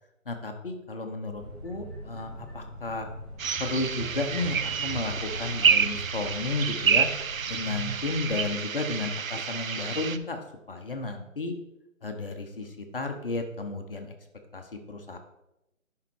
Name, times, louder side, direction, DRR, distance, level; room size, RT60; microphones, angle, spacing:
voice 1, 0.3-3.1 3.6-7.1 7.5-10.4 10.7-11.5 12.0-14.1 14.5-15.2, left 3 dB, 45° left, 5 dB, 1.0 m, -33 dB
sound 1, 1.3-8.5, right 1 dB, 20° left, 1.4 m, -40 dB
sound 2, 3.4-10.2, right 7 dB, 80° right, 0.7 m, -28 dB
11.0 x 3.9 x 4.6 m, 0.90 s
figure-of-eight pair, 155°, 40 cm